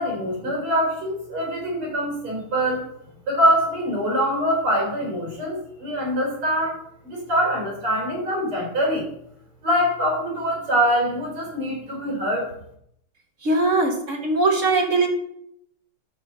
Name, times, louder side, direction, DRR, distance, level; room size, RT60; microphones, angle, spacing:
voice 1, 0.0-2.8 3.3-9.1 9.6-12.5, equal, 80° right, -1 dB, 4.6 m, -24 dB
voice 2, 13.4-15.1, right 3 dB, 35° right, 2 dB, 1.9 m, -20 dB
12.5 x 4.3 x 6.8 m, 0.72 s
omnidirectional pair, 2.4 m